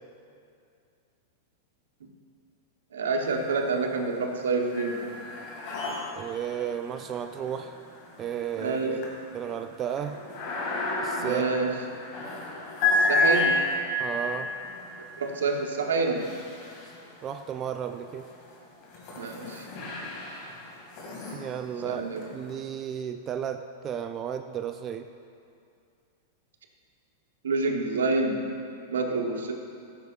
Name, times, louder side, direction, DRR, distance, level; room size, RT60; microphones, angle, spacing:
voice 1, 2.9-5.1 8.6-8.9 11.2-11.7 12.9-13.6 15.2-16.4 19.2-19.7 21.8-22.3 27.4-28.4 28.9-29.5, right 3 dB, 85° right, 1 dB, 1.0 m, -27 dB
sound 1, 3.2-3.9 4.2-17.4 18.0-22.5, left 2 dB, 50° left, 2.1 m, -32 dB
voice 2, 6.2-7.8 8.2-10.2 11.0-11.4 14.0-14.5 17.2-18.3 21.3-22.0 22.3-25.1, right 9 dB, 30° right, 7 dB, 0.3 m, -34 dB
14.0 x 6.1 x 2.4 m, 2.4 s
hypercardioid pair, 120°, 0 cm